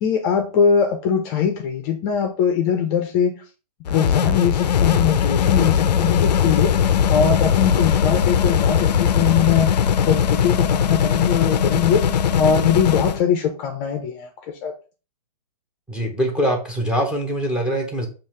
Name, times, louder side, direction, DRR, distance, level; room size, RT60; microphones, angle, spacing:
voice 1, 0.0-3.3 3.9-6.7 7.1-9.7 10.1-12.0 12.4-14.3 14.6-14.7, left 7 dB, 25° left, 5 dB, 0.5 m, -21 dB
sound 1, 3.9-13.2, left 8 dB, 85° left, 0.4 m, -19 dB
voice 2, 15.9-18.1, equal, 5° right, 1 dB, 0.7 m, -23 dB
5.5 x 2.4 x 3.1 m, 0.34 s
hypercardioid pair, 145°, 21 cm